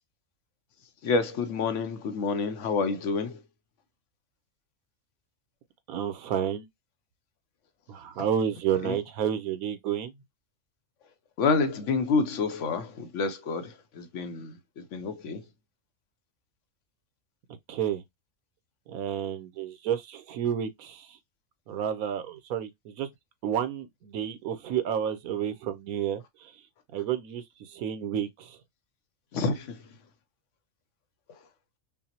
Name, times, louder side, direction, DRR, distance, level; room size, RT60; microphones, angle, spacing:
voice 1, 1.0-3.4 8.8-9.0 11.4-15.4 29.3-30.0 31.3-31.4, left 4 dB, 65° left, 0.9 m, -28 dB
voice 2, 5.9-6.7 7.9-10.1 15.3-15.4 17.7-18.0 18.9-21.2 21.7-23.1 23.4-26.6 26.9-28.6, right 9 dB, 85° right, 1.2 m, -31 dB
5.7 x 2.0 x 2.8 m
omnidirectional pair, 1.5 m